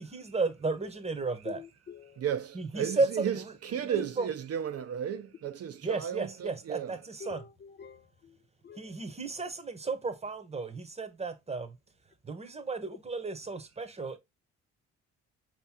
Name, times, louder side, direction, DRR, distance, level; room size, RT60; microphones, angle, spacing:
voice 1, 0.0-1.6 2.5-3.5 3.8-4.3 5.8-7.4 8.8-11.8 12.3-14.2, right 3 dB, 20° right, 0.9 m, -34 dB
voice 2, 1.5-2.1 7.2-8.0 8.6-8.9, left 7 dB, 35° left, 0.5 m, -45 dB
voice 3, 2.2-7.0, right 8 dB, 55° right, 0.6 m, -34 dB
5.1 x 2.9 x 3.5 m
cardioid pair, 90°, 30 cm